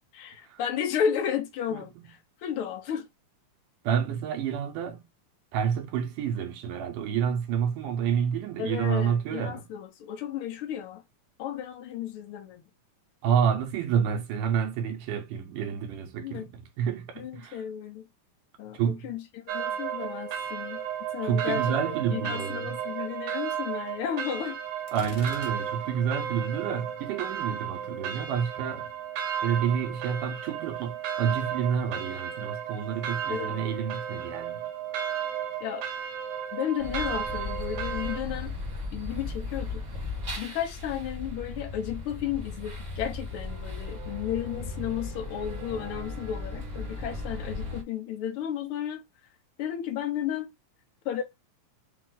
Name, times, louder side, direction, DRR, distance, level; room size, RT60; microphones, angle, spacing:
voice 1, 0.1-3.1 8.6-11.0 11.4-12.6 16.2-16.5 17.2-18.1 18.6-20.8 21.1-24.6 33.3-33.7 35.6-35.8 36.5-38.5 38.9-39.8 40.4-49.0 49.6-50.5 51.0-51.2, left 9 dB, 85° left, 1.2 m, -33 dB
voice 2, 1.7-2.1 3.8-5.1 5.5-9.7 13.2-17.6 18.8-19.0 21.2-22.8 24.9-28.9 29.4-34.7, right 8 dB, 90° right, 2.6 m, -29 dB
sound 1, 19.5-38.2, right 8 dB, 75° right, 1.9 m, -34 dB
Gunshot gunfire, 24.9-26.1, left 7 dB, 65° left, 1.6 m, -46 dB
sound 2, 36.8-47.8, left 3 dB, 25° right, 0.9 m, -36 dB
5.6 x 2.5 x 3.8 m
omnidirectional pair, 3.6 m